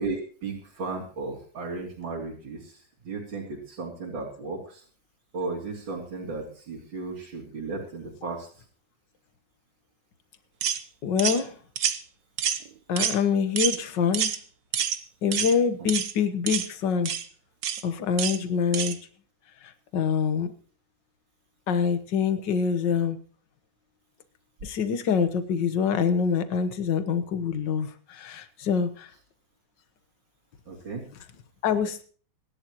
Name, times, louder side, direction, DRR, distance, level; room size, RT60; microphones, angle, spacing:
voice 1, 0.0-4.8 5.3-8.5 15.8-15.9 30.7-31.0, right 3 dB, 75° right, -4 dB, 3.8 m, -35 dB
sound 1, 10.6-10.8 11.2-11.4 11.8-12.0 12.4-12.7 13.0-13.2 13.6-13.8 14.1-14.4 14.7-15.0 15.3-15.6 15.9-16.1 16.5-16.7 17.1-17.2 17.6-17.8 18.2-18.4 18.7-19.0, right 8 dB, 55° right, 1.3 m, -27 dB
voice 2, 11.0-11.5 12.9-14.3 15.2-17.1 17.8-19.0 19.9-20.5 21.7-23.2 24.6-29.1 31.6-32.0, left 6 dB, 65° left, 10 dB, 1.8 m, -25 dB
25.0 x 11.5 x 3.0 m, 0.42 s
omnidirectional pair, 2.1 m